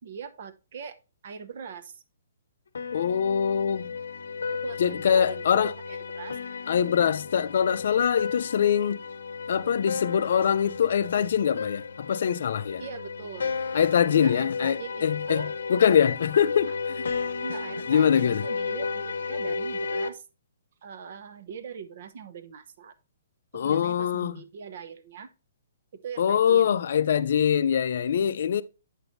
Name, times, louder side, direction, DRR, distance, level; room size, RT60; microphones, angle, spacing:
voice 1, 0.0-1.0 1.2-2.0 4.5-6.4 12.8-15.5 17.4-20.2 20.8-22.9 23.5-25.3 25.9-26.7, right 7 dB, 45° right, 0.7 m, -41 dB
sound 1, 2.7-20.1, left 5 dB, 85° left, 0.7 m, -33 dB
voice 2, 2.9-3.9 4.8-5.7 6.7-9.0 9.5-12.8 13.7-17.0 17.9-18.5 23.5-24.4 26.2-28.6, left 8 dB, 55° left, 0.4 m, -23 dB
7.9 x 6.2 x 2.6 m
hypercardioid pair, 170°, 0 cm